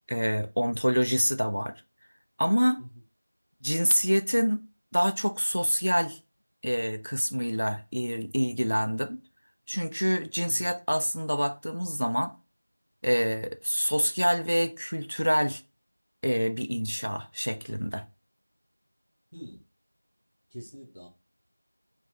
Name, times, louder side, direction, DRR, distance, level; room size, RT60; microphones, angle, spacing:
voice 1, 0.1-1.7 2.4-2.8 3.6-4.6 4.9-6.2 6.6-9.2 9.7-12.3 13.0-15.6 16.2-18.0, equal, 55° right, 0.4 m, -27 dB
voice 2, 10.4-10.7 19.3-19.6 20.5-21.1, equal, 10° left, 0.3 m, -45 dB
5.6 x 2.7 x 2.5 m
figure-of-eight pair, 180°, 0 cm